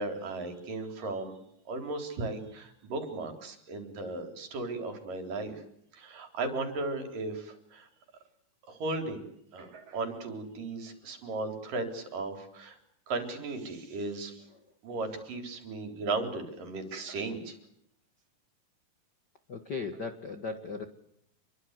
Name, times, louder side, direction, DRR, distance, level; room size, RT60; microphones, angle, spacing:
voice 1, 0.0-1.4 1.7-5.6 5.9-7.9 8.7-9.3 9.5-12.8 13.1-14.4 14.8-17.6, right 3 dB, 65° right, 6 dB, 5.3 m, -36 dB
voice 2, 19.5-20.8, left 4 dB, 45° left, 8 dB, 1.4 m, -37 dB
27.5 x 23.0 x 8.2 m, 0.73 s
omnidirectional pair, 4.3 m